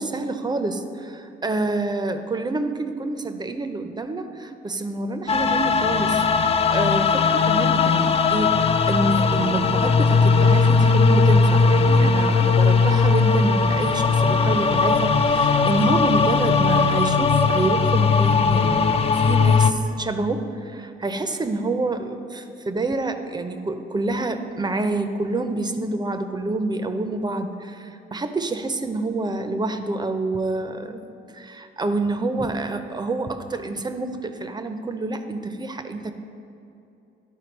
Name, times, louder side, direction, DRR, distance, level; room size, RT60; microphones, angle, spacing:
voice 1, 0.0-6.2 6.7-31.0 31.3-36.1, right 2 dB, 20° right, 8 dB, 0.6 m, -27 dB
sound 1, 5.3-19.7, left 4 dB, 30° left, 0.4 m, -18 dB
11.0 x 4.5 x 4.5 m, 2.7 s
cardioid pair, 90°, 20 cm